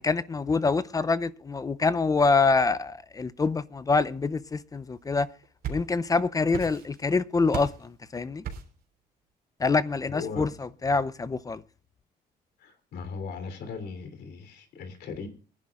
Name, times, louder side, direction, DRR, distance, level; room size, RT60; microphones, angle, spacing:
voice 1, 0.0-5.3 5.7-8.4 9.6-11.6, left 4 dB, 20° left, 0.6 m, -26 dB
sound 1, 5.2-6.2 6.5-7.1 7.5-7.9 8.4-8.8, right 7 dB, 65° right, 3.1 m, -37 dB
voice 2, 10.1-10.5 12.6-15.3, left 5 dB, 75° left, 3.2 m, -38 dB
24.0 x 10.5 x 2.4 m
cardioid pair, 130°, 17 cm